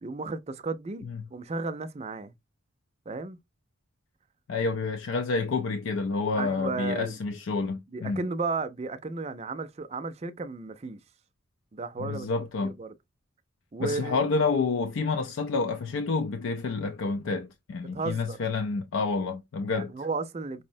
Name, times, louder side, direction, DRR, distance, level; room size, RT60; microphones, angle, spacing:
voice 1, 0.0-1.1 1.3-2.3 3.1-3.4 6.4-7.2 7.9-11.0 11.7-12.9 13.7-14.3 17.9-18.4 19.7-20.6, right 3 dB, 30° right, 0.4 m, -34 dB
voice 2, 4.5-8.2 12.0-12.8 13.8-19.9, left 4 dB, 85° left, 0.4 m, -29 dB
5.3 x 2.0 x 2.6 m
head